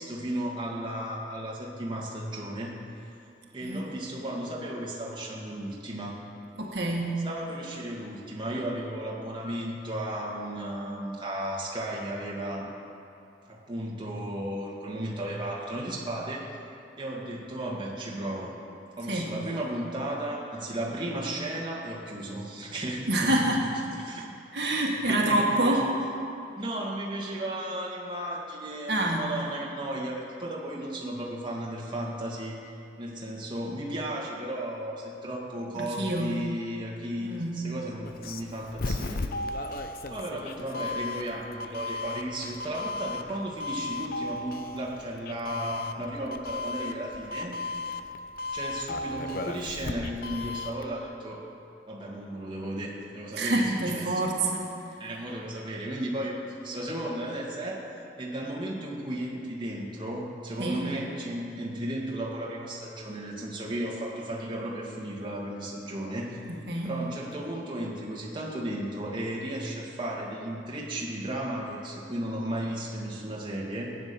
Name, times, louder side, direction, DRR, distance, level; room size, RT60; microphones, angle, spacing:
voice 1, 0.0-2.7 3.5-6.2 7.2-12.7 13.5-16.6 17.0-18.6 19.0-23.4 23.9-24.3 25.1-26.0 26.6-32.6 33.0-39.2 40.1-47.5 48.5-51.4 51.9-54.2 55.0-57.8 58.2-66.4 66.8-73.9, right 1 dB, 30° right, -4 dB, 2.1 m, -34 dB
voice 2, 6.6-7.1 19.1-19.3 23.1-23.6 24.5-25.8 28.9-29.2 35.8-36.3 37.2-37.6 53.4-54.7 60.6-60.8 66.5-66.9, right 1 dB, 70° right, -1 dB, 1.9 m, -27 dB
Doorbell, 38.1-50.9, left 3 dB, 55° left, 0.7 m, -35 dB
15.0 x 9.7 x 7.0 m, 2.7 s
head